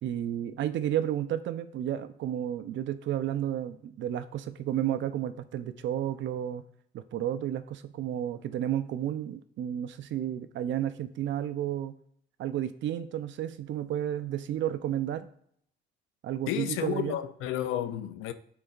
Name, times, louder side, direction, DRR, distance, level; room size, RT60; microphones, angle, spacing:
voice 1, 0.0-6.6 6.9-11.9 12.4-15.3 16.2-17.2, right 11 dB, 70° right, 0.5 m, -32 dB
voice 2, 16.5-18.3, left 11 dB, 90° left, 0.5 m, -32 dB
9.9 x 4.0 x 2.4 m
cardioid pair, 90°, 20 cm